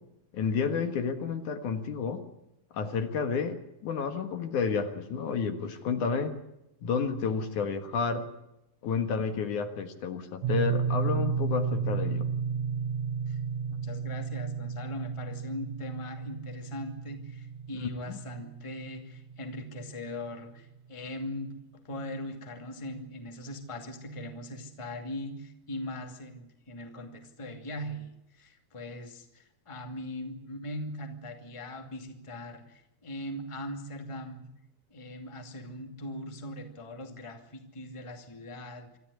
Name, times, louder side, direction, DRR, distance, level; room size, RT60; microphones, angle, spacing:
voice 1, 0.3-2.2 2.7-3.6 3.8-6.3 6.8-8.2 8.8-12.2 17.7-18.2, left 5 dB, 65° left, 7 dB, 3.0 m, -30 dB
sound 1, 10.4-20.3, right 6 dB, 65° right, 1.8 m, -33 dB
voice 2, 13.7-34.5 34.9-39.0, left 1 dB, 10° left, 5 dB, 1.9 m, -40 dB
25.5 x 13.5 x 9.7 m, 0.86 s
omnidirectional pair, 3.9 m